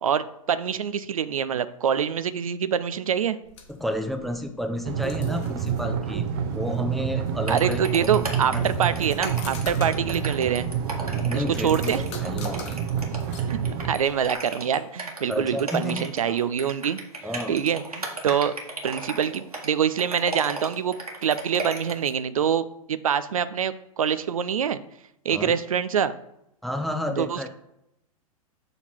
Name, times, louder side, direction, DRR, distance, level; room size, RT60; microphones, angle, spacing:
voice 1, 0.0-3.4 7.5-10.7 11.3-12.0 13.5-13.6 13.9-17.0 17.5-18.5 18.8-21.0 21.2-24.8 25.2-26.1 27.2-27.5, right 8 dB, 70° right, 14 dB, 0.5 m, -25 dB
sound 1, 3.4-14.5, left 5 dB, 50° left, 1.2 m, -46 dB
voice 2, 3.7-6.2 6.5-8.1 8.5-8.6 9.0-9.1 11.2-12.8 15.3-16.1 17.2-17.6 25.3-25.5 26.6-27.5, left 1 dB, ahead, 6 dB, 0.6 m, -31 dB
sound 2, 4.8-13.9, right 7 dB, 40° right, 0.8 m, -28 dB
sound 3, 7.5-22.1, right 2 dB, 85° right, 1.6 m, -35 dB
6.9 x 4.0 x 4.4 m, 0.81 s
figure-of-eight pair, 105°, 19 cm